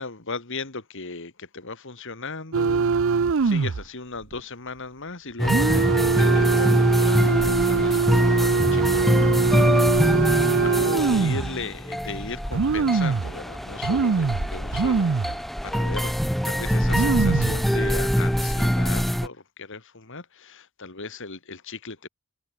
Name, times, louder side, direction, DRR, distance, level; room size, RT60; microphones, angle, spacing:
voice 1, 0.0-2.9 3.3-15.4 15.6-16.2 16.4-22.1, left 3 dB, 60° left, 2.5 m, -37 dB
sound 1, 2.5-3.8 4.2-4.4 5.4-11.5 12.1-12.2 12.5-13.4 13.8-15.4 15.7-15.8 16.5-16.6 16.8-17.6 18.1-18.4, right 5 dB, 65° right, 0.5 m, -22 dB
sound 2, 5.4-19.3, equal, ahead, 0.6 m, -23 dB
head